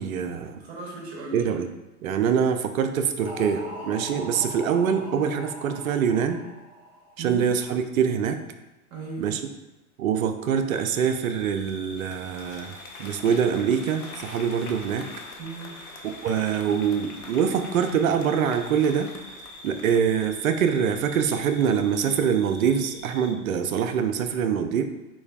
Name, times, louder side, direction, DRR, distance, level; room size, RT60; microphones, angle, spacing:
voice 1, 0.0-0.6 1.3-1.7 2.0-6.4 7.2-8.4 9.2-9.4 10.0-15.1 16.0-19.1 19.6-24.8, right 7 dB, 65° right, 7 dB, 0.5 m, -24 dB
voice 2, 0.6-1.4 4.1-4.4 7.2-7.4 8.9-9.4 15.4-15.7, right 3 dB, 50° right, -1 dB, 1.0 m, -37 dB
sound 1, 3.2-7.4, equal, 5° right, 1.2 m, -39 dB
sound 2, 10.7-23.3, equal, 85° left, 1.4 m, -46 dB
Applause, 11.6-20.5, left 3 dB, 65° left, 0.6 m, -45 dB
3.8 x 3.1 x 2.4 m, 1.1 s
figure-of-eight pair, 90°, 44 cm